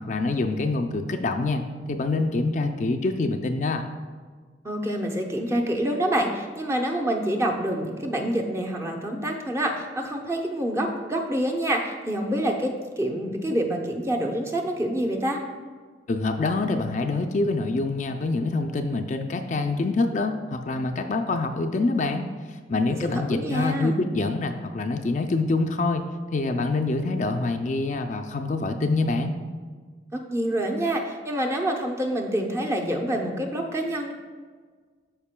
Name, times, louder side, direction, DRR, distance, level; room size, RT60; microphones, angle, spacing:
voice 1, 0.0-3.8 16.1-22.3 22.7-29.4, left 3 dB, 40° left, 5 dB, 0.4 m, -26 dB
voice 2, 4.6-15.4 22.9-24.0 30.1-34.1, right 1 dB, 15° right, 2 dB, 0.6 m, -27 dB
12.5 x 5.1 x 2.2 m, 1.6 s
head